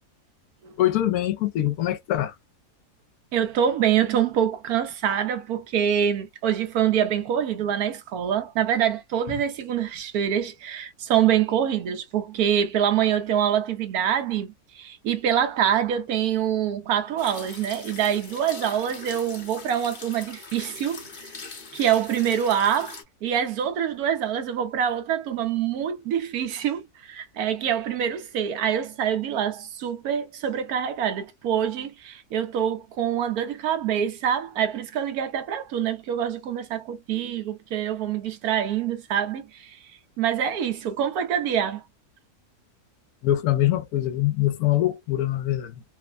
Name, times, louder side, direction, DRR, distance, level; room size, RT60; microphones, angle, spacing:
voice 1, 0.8-2.3 43.2-45.8, left 13 dB, 80° left, 1.1 m, -23 dB
voice 2, 3.3-21.3 21.7-39.8 40.2-41.8, right 9 dB, 70° right, 1.1 m, -25 dB
sound 1, 17.2-23.0, left 4 dB, 40° left, 0.7 m, -41 dB
3.1 x 2.1 x 2.3 m
omnidirectional pair, 1.7 m